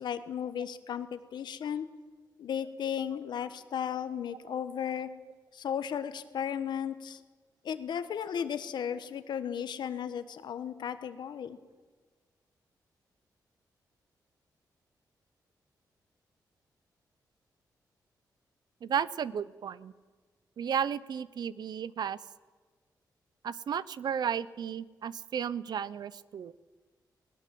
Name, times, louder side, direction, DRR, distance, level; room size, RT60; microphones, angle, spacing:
voice 1, 0.0-1.9 2.4-5.1 5.5-7.2 7.6-11.6, left 8 dB, 80° left, 11 dB, 1.3 m, -35 dB
voice 2, 18.8-19.9 20.6-22.2 23.4-26.5, right 8 dB, 70° right, 18 dB, 0.7 m, -33 dB
19.0 x 19.0 x 7.7 m, 1.4 s
cardioid pair, 80°, 7 cm